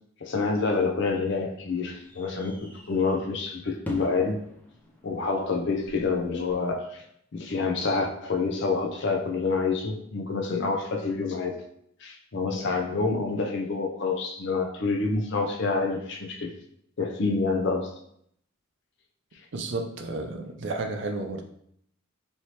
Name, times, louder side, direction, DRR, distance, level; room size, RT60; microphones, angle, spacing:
voice 1, 0.2-4.4 5.0-7.0 7.3-11.6 12.0-16.5 17.0-17.9, left 4 dB, 60° left, 3 dB, 0.5 m, -27 dB
sound 1, 0.5-6.5, equal, 10° left, 0.4 m, -45 dB
voice 2, 19.5-21.5, right 2 dB, 60° right, 4 dB, 0.5 m, -32 dB
3.2 x 2.8 x 2.9 m, 0.69 s
head